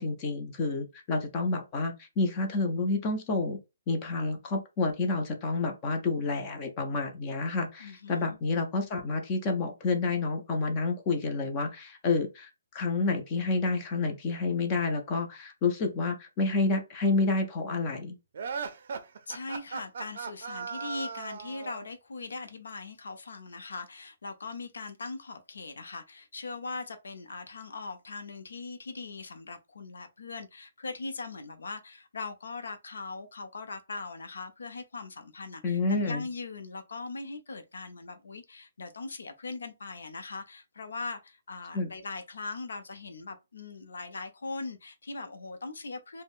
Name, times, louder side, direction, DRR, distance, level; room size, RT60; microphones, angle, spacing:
voice 1, 0.0-3.6 3.9-18.2 35.6-36.2 41.7-41.9, left 3 dB, 25° left, 0.5 m, -29 dB
voice 2, 7.8-8.4 19.3-46.2, left 3 dB, 90° left, 0.6 m, -40 dB
sound 1, 18.3-21.9, right 5 dB, 55° right, 0.4 m, -37 dB
3.6 x 2.1 x 2.4 m
hypercardioid pair, 165°, 0 cm